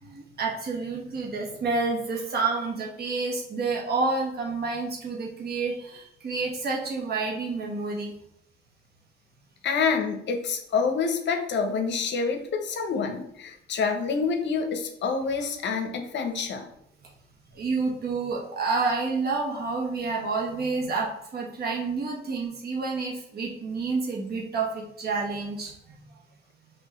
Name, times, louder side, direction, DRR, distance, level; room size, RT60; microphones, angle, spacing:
voice 1, 0.0-8.2 17.5-26.1, right 4 dB, 55° right, -1 dB, 1.4 m, -29 dB
voice 2, 9.6-16.7, left 5 dB, 65° left, 5 dB, 0.8 m, -27 dB
5.8 x 2.9 x 3.1 m, 0.75 s
cardioid pair, 90°, 20 cm